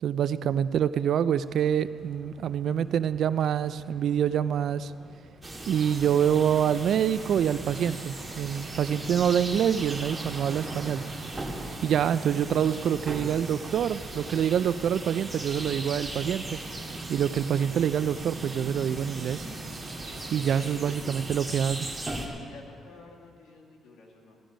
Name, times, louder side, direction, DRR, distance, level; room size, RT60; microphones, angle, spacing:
voice 1, 0.0-4.9 5.7-11.0 11.8-16.6 17.1-19.5 20.3-21.9, right 9 dB, 65° right, 15 dB, 0.3 m, -26 dB
sound 1, 1.4-20.4, right 2 dB, 30° right, 2.4 m, -51 dB
sound 2, 5.4-22.3, right 2 dB, 10° right, 2.1 m, -38 dB
Rain, 5.7-21.5, right 5 dB, 85° right, 1.4 m, -48 dB
voice 2, 20.4-21.1 22.1-24.4, left 3 dB, 80° left, -2 dB, 2.3 m, -48 dB
16.0 x 13.0 x 5.1 m, 2.3 s
cardioid pair, 90°, 0 cm